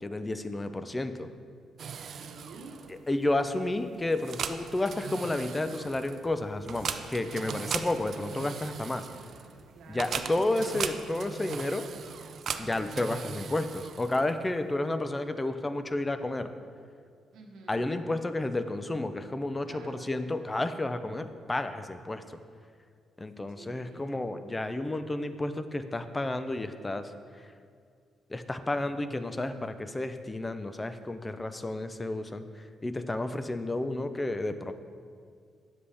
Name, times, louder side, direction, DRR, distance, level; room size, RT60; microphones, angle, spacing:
voice 1, 0.0-1.3 2.9-9.1 9.9-11.9 12.6-16.5 17.7-22.2 23.2-27.1 28.3-32.5 32.8-34.7, left 2 dB, 20° left, 10 dB, 0.5 m, -31 dB
sound 1, 1.8-14.5, right 7 dB, 60° right, 0.4 m, -39 dB
voice 2, 2.1-2.8 9.7-10.7 17.3-17.9 19.6-20.1 23.5-24.1, right 3 dB, 80° right, 0 dB, 1.1 m, -49 dB
9.7 x 7.5 x 3.4 m, 2.1 s
cardioid pair, 90°, 0 cm